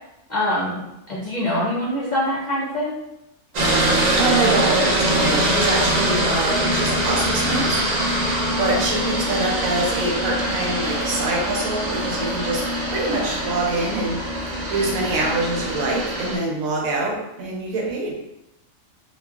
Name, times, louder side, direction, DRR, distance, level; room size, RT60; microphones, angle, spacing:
voice 1, 0.3-2.9, left 1 dB, 55° left, -7 dB, 0.5 m, -24 dB
sound 1, 3.5-16.4, right 1 dB, 70° right, 0.4 m, -23 dB
voice 2, 3.8-18.1, right 2 dB, 90° right, -1 dB, 1.1 m, -25 dB
3.0 x 2.2 x 2.3 m, 0.89 s
omnidirectional pair, 1.4 m